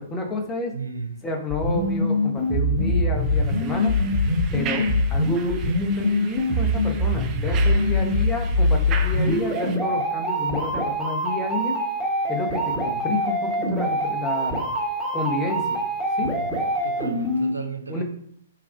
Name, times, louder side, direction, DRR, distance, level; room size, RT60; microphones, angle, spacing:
voice 1, 0.0-0.7 1.2-4.0 4.5-11.7 12.3-14.6 15.1-15.8 16.2-16.3 17.9-18.0, left 2 dB, 15° left, 2 dB, 0.8 m, -30 dB
voice 2, 0.7-1.2 7.5-7.9 16.2-16.5 16.8-18.0, right 4 dB, 80° right, 6 dB, 0.4 m, -34 dB
sound 1, 1.5-17.5, left 1 dB, ahead, 1.1 m, -23 dB
sound 2, 3.2-9.8, right 6 dB, 25° right, 0.5 m, -38 dB
5.6 x 2.3 x 2.5 m, 0.66 s
figure-of-eight pair, 115°, 0 cm